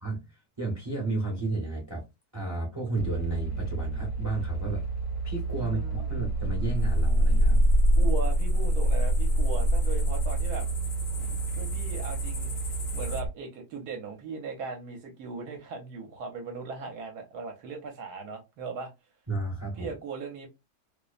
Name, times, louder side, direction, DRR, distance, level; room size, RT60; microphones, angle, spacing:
voice 1, 0.0-2.0 2.3-4.8 5.2-7.7 19.3-19.9, right 2 dB, 20° right, 0.7 m, -32 dB
sound 1, 3.0-13.3, right 1 dB, 55° left, 1.1 m, -26 dB
voice 2, 5.6-6.2 8.0-10.7 11.6-12.6 12.9-18.9 19.8-20.5, right 4 dB, 70° right, 1.1 m, -38 dB
sound 2, 6.8-13.2, left 3 dB, 85° left, 0.4 m, -43 dB
2.8 x 2.0 x 2.3 m
omnidirectional pair, 1.8 m